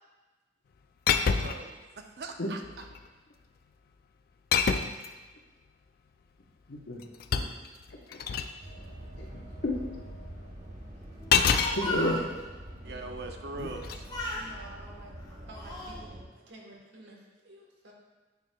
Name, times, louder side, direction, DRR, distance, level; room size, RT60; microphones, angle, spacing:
sound 1, 1.1-1.7 2.6-3.1 4.5-5.1 6.8-8.5 11.3-11.8 13.7-14.0, left 6 dB, 55° left, 0.3 m, -26 dB
voice 1, 1.1-2.6 12.8-14.0 14.6-14.7, right 3 dB, 65° right, 5 dB, 0.6 m, -42 dB
voice 2, 6.7-7.0 7.3-7.5 7.9-8.2 9.1-9.8 11.7-12.2 13.6-13.7, left 1 dB, 90° left, 1 dB, 0.9 m, -32 dB
sound 2, 8.6-16.2, right 1 dB, 40° right, 1.0 m, -44 dB
Speech, 11.2-12.3 13.6-13.8 14.1-14.5 15.2-16.0, left 1 dB, 20° left, 0.9 m, -35 dB
voice 3, 12.8-13.3 14.3-15.1 15.4-17.9, right 2 dB, 85° right, -1 dB, 1.2 m, -51 dB
9.2 x 4.7 x 2.3 m, 1.2 s
head